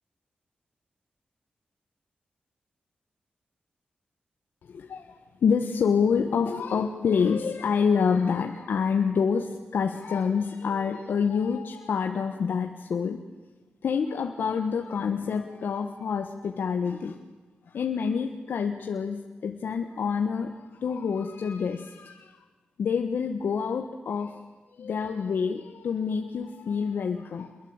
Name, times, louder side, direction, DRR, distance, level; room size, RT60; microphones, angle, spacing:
voice 1, 4.6-13.2 13.8-17.2 17.7-22.4 22.8-24.4 24.7-27.6, left 6 dB, 80° left, 5 dB, 1.5 m, -27 dB
27.0 x 22.5 x 8.9 m, 1.3 s
cardioid pair, 55°, 3 cm